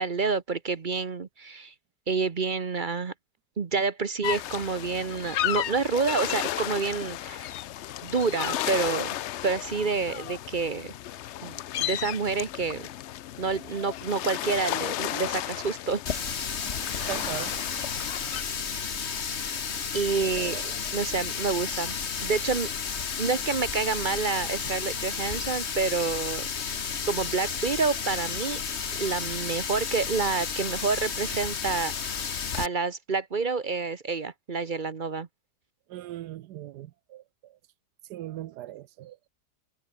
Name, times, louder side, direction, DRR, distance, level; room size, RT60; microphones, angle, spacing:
voice 1, 0.0-1.7 2.1-3.1 3.6-7.5 8.0-9.2 9.4-10.9 11.4-12.9 13.4-16.0 16.7-17.1 19.9-20.6 20.9-26.5 27.1-28.6 29.0-32.2 32.5-35.3, right 4 dB, 35° right, 0.9 m, -28 dB
sound 1, 4.2-18.4, left 13 dB, 75° left, 0.6 m, -34 dB
Water tap faucet, 16.1-32.7, left 6 dB, 45° left, 1.4 m, -32 dB
voice 2, 17.1-17.5 20.2-20.7 23.1-23.2 35.9-37.6 38.1-39.2, right 14 dB, 80° right, 1.2 m, -39 dB
omnidirectional pair, 1.8 m